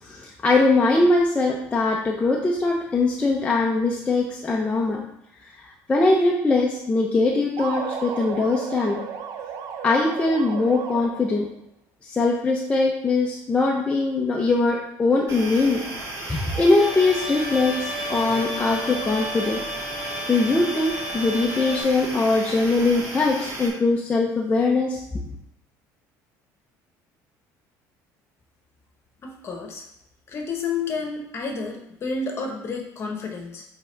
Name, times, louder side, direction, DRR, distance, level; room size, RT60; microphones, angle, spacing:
voice 1, 0.0-5.0 5.4-9.0 9.8-11.5 12.0-15.8 16.3-19.6 20.3-25.0, left 3 dB, 15° left, -1 dB, 0.7 m, -21 dB
sound 1, 7.6-11.4, right 7 dB, 65° right, 0.7 m, -34 dB
sound 2, 15.3-23.7, right 2 dB, 40° right, 1.9 m, -35 dB
Bowed string instrument, 16.8-21.8, equal, 5° right, 1.3 m, -33 dB
voice 2, 29.2-29.8 30.3-33.6, left 4 dB, 40° left, 2 dB, 1.2 m, -30 dB
8.1 x 3.7 x 3.4 m, 0.76 s
cardioid pair, 130°, 7 cm